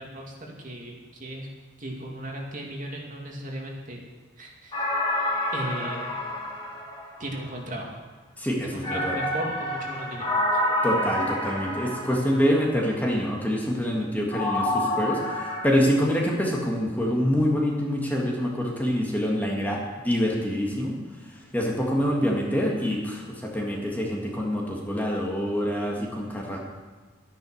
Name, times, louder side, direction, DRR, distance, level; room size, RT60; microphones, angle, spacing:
voice 1, 0.0-1.5 1.8-4.0 4.4-5.1 5.5-6.1 7.2-8.0 8.6-10.6, right 1 dB, 40° right, 0 dB, 2.5 m, -36 dB
sound 1, 4.7-7.5 8.8-12.7 14.3-15.7, left 1 dB, 25° left, 2.3 m, -28 dB
voice 2, 8.4-9.2 10.8-26.6, equal, 10° left, -2 dB, 1.9 m, -26 dB
13.0 x 10.5 x 6.5 m, 1.3 s
head